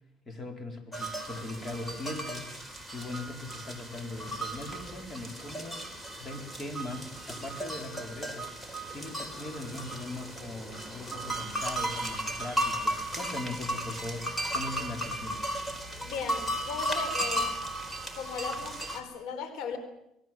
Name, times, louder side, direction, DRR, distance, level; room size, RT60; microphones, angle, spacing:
voice 1, 0.3-2.5 2.9-5.8 6.2-8.5 8.9-15.4, left 2 dB, 25° left, 5 dB, 4.4 m, -40 dB
sound 1, 0.9-19.0, right 1 dB, 10° left, 4.1 m, -35 dB
voice 2, 15.9-17.5 18.2-19.8, left 6 dB, 75° left, 10 dB, 4.2 m, -37 dB
26.5 x 21.5 x 7.6 m, 0.80 s
cardioid pair, 120°, 0 cm